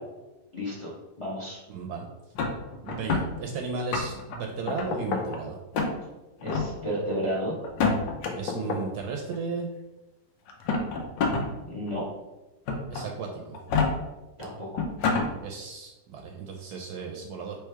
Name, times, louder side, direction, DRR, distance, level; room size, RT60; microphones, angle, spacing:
voice 1, 0.5-0.9 1.2-1.6 6.4-7.5 11.6-12.0 14.4-14.9, equal, 25° left, -5 dB, 0.7 m, -32 dB
voice 2, 1.7-2.1 2.8-5.6 8.3-9.8 12.9-13.6 15.4-17.6, right 4 dB, 70° right, 1 dB, 1.0 m, -34 dB
sound 1, 2.4-3.3 3.7-4.4 4.8-5.4 5.7-5.9 6.4-6.7 7.6-8.3 9.3-9.4 10.5-11.5 11.9-12.0 12.7-13.0 13.5-13.9 14.4-14.5 14.8-15.3, left 4 dB, 85° left, 1.4 m, -26 dB
sound 2, 4.7-5.4 8.3-9.0 10.6-10.7, left 4 dB, 70° left, 1.0 m, -32 dB
3.3 x 3.3 x 4.6 m, 1.1 s
omnidirectional pair, 2.0 m